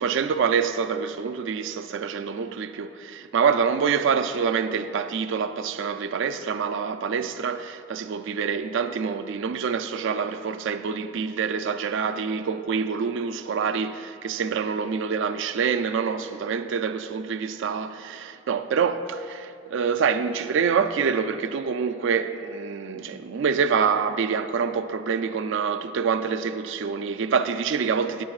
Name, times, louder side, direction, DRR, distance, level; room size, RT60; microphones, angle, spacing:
voice 1, 0.0-28.2, right 6 dB, 70° right, 0.4 m, -26 dB
13.0 x 9.5 x 2.4 m
head